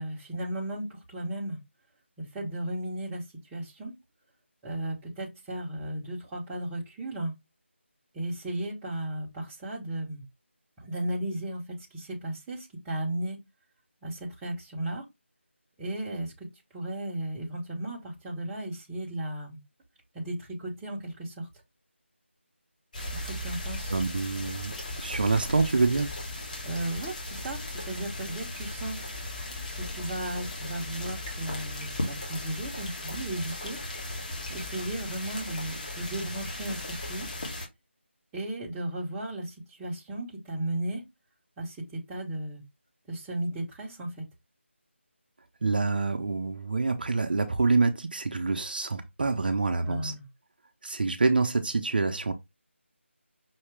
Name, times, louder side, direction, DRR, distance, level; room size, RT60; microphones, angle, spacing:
voice 1, 0.0-1.6 2.2-3.2 3.5-3.9 4.6-7.3 8.1-10.2 10.8-13.4 14.0-15.0 15.8-16.5 16.7-19.6 20.1-21.5 23.1-23.9 26.6-29.0 29.7-33.8 34.5-37.3 38.3-41.0 41.6-42.6 43.1-44.2 49.8-50.3, right 1 dB, 10° right, 0.8 m, -35 dB
sound 1, 22.9-37.7, left 1 dB, 35° left, 1.4 m, -37 dB
voice 2, 23.9-26.1 45.6-50.1 50.8-52.3, right 3 dB, 45° right, 0.6 m, -26 dB
5.7 x 2.8 x 3.3 m
figure-of-eight pair, 165°, 7 cm